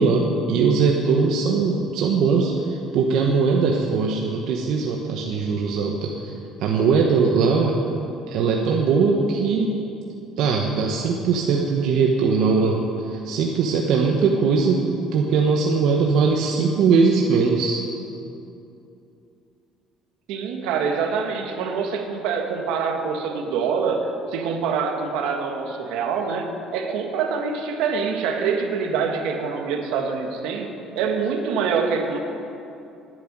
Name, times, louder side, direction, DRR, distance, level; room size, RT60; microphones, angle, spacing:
voice 1, 0.0-6.3 6.6-7.8 8.3-9.8 10.4-17.8, right 5 dB, 60° right, 0 dB, 1.2 m, -20 dB
voice 2, 20.3-30.7 30.9-32.2, right 5 dB, 75° right, 3 dB, 1.7 m, -25 dB
10.5 x 9.3 x 9.5 m, 2.7 s
cardioid pair, 165°, 0 cm